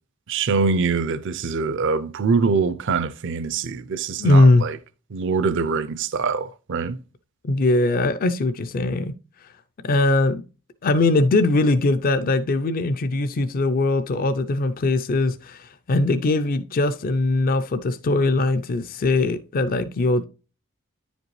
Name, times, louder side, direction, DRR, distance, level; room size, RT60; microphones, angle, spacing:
voice 1, 0.3-4.8 5.1-7.0, right 4 dB, 60° right, 0.5 m, -24 dB
voice 2, 4.2-4.7 7.4-9.1 9.8-10.4 10.8-20.2, left 2 dB, 40° left, 0.4 m, -20 dB
10.0 x 5.1 x 3.1 m
head